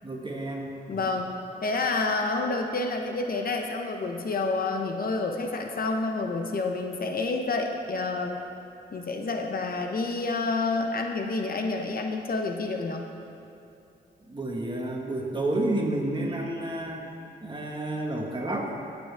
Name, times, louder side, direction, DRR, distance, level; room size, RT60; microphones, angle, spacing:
voice 1, 0.0-1.1 14.3-17.0 17.4-18.7, right 1 dB, 25° right, 0 dB, 1.6 m, -30 dB
voice 2, 0.9-1.3 1.6-8.4 8.9-13.1, left 3 dB, 55° left, 3 dB, 0.8 m, -29 dB
16.0 x 7.0 x 3.5 m, 2.8 s
cardioid pair, 80°, 18 cm